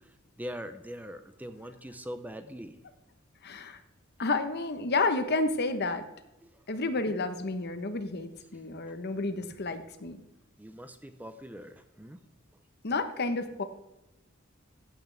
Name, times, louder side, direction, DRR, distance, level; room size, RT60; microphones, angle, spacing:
voice 1, 0.0-2.8 6.4-6.6 10.6-12.2, equal, 10° right, 9 dB, 0.6 m, -42 dB
voice 2, 3.4-3.8 4.2-6.0 6.7-10.2 12.8-13.6, left 3 dB, 55° left, 9 dB, 1.0 m, -30 dB
15.0 x 8.5 x 3.4 m, 0.96 s
head